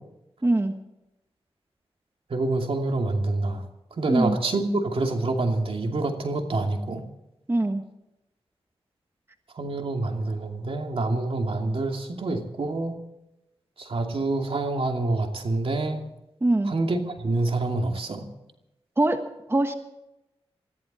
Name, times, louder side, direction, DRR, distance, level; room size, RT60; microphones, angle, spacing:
voice 1, 0.4-0.7 4.1-4.4 7.5-7.8 16.4-16.7 19.0-19.7, right 2 dB, 25° right, 6 dB, 1.4 m, -23 dB
voice 2, 2.3-3.6 4.0-7.0 9.6-12.9 13.8-16.0 16.7-18.3, right 2 dB, 65° right, 3 dB, 2.6 m, -27 dB
21.0 x 15.0 x 4.3 m, 0.92 s
cardioid pair, 60°, 10 cm